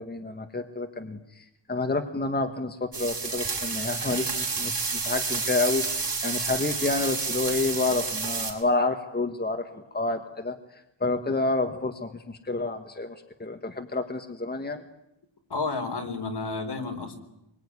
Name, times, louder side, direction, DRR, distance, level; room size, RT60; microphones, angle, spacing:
voice 1, 0.0-14.8, left 3 dB, 20° left, 6 dB, 1.6 m, -29 dB
Cooking Steak, 2.9-8.5, right 4 dB, 50° right, 6.3 m, -30 dB
voice 2, 15.5-17.2, left 3 dB, 60° left, 5 dB, 4.1 m, -31 dB
26.0 x 23.0 x 9.8 m, 0.86 s
wide cardioid pair, 155°, 46 cm